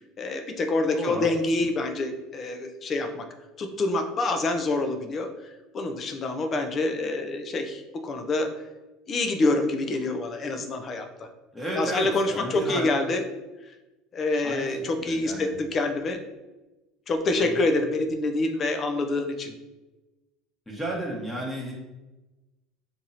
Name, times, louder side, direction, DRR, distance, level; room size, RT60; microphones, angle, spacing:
voice 1, 0.2-3.3 3.6-5.3 5.7-8.5 9.1-11.1 11.7-13.2 14.1-16.2 17.1-19.5, left 2 dB, 40° left, 6 dB, 0.5 m, -26 dB
voice 2, 0.9-1.3 11.5-12.9 14.4-15.5 17.4-17.6 20.7-21.7, right 1 dB, 10° left, -3 dB, 1.0 m, -32 dB
2.9 x 2.6 x 4.0 m, 1.1 s
supercardioid pair, 95°, 0 cm